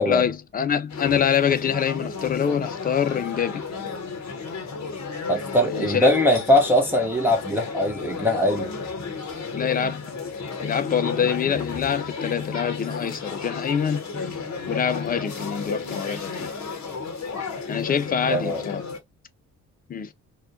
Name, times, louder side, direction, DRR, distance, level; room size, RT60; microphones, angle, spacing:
voice 1, 0.1-3.6 5.7-6.1 9.5-10.1 10.6-16.5 17.7-18.8 19.9-20.1, left 7 dB, 25° left, 0.3 m, -25 dB
sound 1, 0.9-19.0, left 4 dB, 40° left, 1.0 m, -33 dB
voice 2, 5.3-8.7 18.3-18.6, left 1 dB, 5° right, 0.7 m, -21 dB
2.9 x 2.1 x 2.5 m
hypercardioid pair, 45°, 44 cm